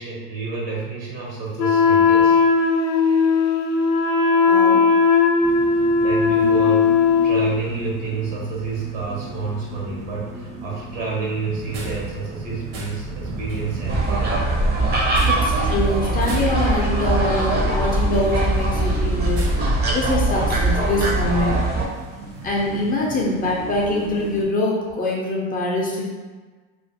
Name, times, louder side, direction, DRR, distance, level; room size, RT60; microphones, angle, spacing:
voice 1, 0.0-2.4 6.0-14.4, right 4 dB, 80° right, -4 dB, 1.0 m, -29 dB
Wind instrument woodwind instrument, 1.6-7.5, left 5 dB, 90° left, 0.5 m, -17 dB
voice 2, 4.5-4.8 15.3-21.7 22.4-26.1, left 2 dB, 25° left, -2 dB, 0.4 m, -24 dB
sound 1, 5.4-24.4, right 3 dB, 60° right, 0.7 m, -36 dB
sound 2, 13.9-21.8, right 2 dB, 30° right, 0.5 m, -21 dB
2.5 x 2.2 x 2.5 m, 1.4 s
supercardioid pair, 110°, 37 cm